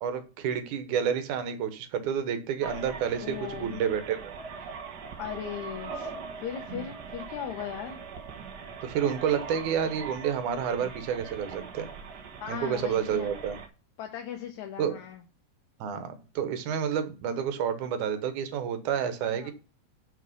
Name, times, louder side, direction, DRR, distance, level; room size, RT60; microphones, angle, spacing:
voice 1, 0.0-4.3 6.7-6.9 8.8-11.9 12.5-13.6 14.8-15.0 15.8-19.5, right 8 dB, 80° right, 9 dB, 2.6 m, -29 dB
sound 1, 2.6-13.7, right 5 dB, 55° right, 1.2 m, -41 dB
voice 2, 3.2-3.8 5.2-6.1 6.4-8.0 12.4-13.3 14.0-15.2 19.2-19.5, left 9 dB, 75° left, 3 dB, 2.4 m, -38 dB
6.5 x 6.3 x 5.3 m, 0.34 s
omnidirectional pair, 3.5 m